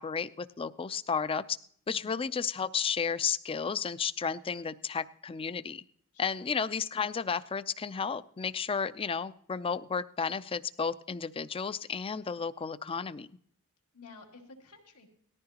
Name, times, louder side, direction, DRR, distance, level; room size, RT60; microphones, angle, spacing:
voice 1, 0.0-1.6 1.9-5.8 6.2-13.3, left 6 dB, 25° left, 16 dB, 0.4 m, -33 dB
voice 2, 1.9-2.2 6.1-6.5 13.9-15.1, left 3 dB, 80° left, 1 dB, 2.5 m, -53 dB
18.5 x 14.0 x 2.9 m, 0.63 s
head